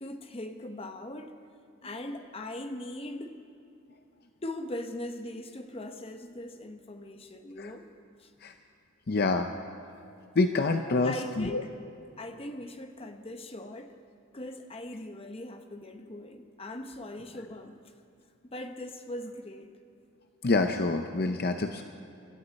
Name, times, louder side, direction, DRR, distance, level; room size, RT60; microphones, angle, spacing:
voice 1, 0.0-1.4 1.8-3.4 4.4-7.9 8.2-8.3 10.9-11.7 12.2-14.0 14.3-18.0 18.4-19.7, left 1 dB, 30° left, 6 dB, 0.9 m, -40 dB
voice 2, 9.1-9.5 10.4-11.6 20.4-21.8, left 3 dB, 50° left, 6 dB, 0.6 m, -27 dB
25.0 x 13.0 x 4.2 m, 2.6 s
head